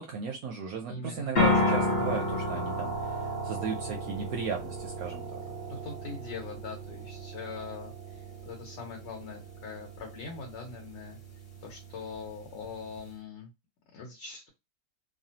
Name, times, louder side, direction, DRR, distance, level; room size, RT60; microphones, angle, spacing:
voice 1, 0.0-3.2 3.4-5.4, right 6 dB, 70° right, 2 dB, 0.9 m, -35 dB
voice 2, 0.9-1.3 5.4-11.2 11.6-13.5 13.9-14.5, left 5 dB, 80° left, 0 dB, 1.5 m, -42 dB
sound 1, 1.3-13.1, left 1 dB, 40° left, 0.9 m, -33 dB
3.2 x 2.1 x 2.7 m, 0.23 s
omnidirectional pair, 1.9 m